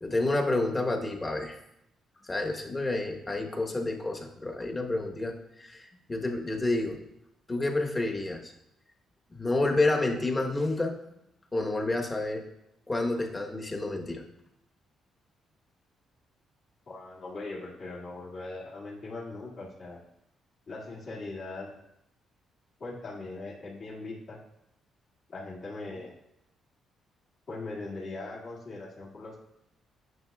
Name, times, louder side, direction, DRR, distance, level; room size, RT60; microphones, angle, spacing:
voice 1, 0.0-1.6 2.3-7.0 7.5-8.5 9.3-10.9 11.5-12.4 12.9-14.2, left 2 dB, 20° left, 2 dB, 1.1 m, -29 dB
voice 2, 16.9-20.0 20.7-21.7 22.8-24.4 25.3-26.1 27.5-29.4, left 2 dB, 55° left, -6 dB, 2.0 m, -40 dB
9.4 x 6.5 x 2.3 m, 0.81 s
cardioid pair, 90°, 0 cm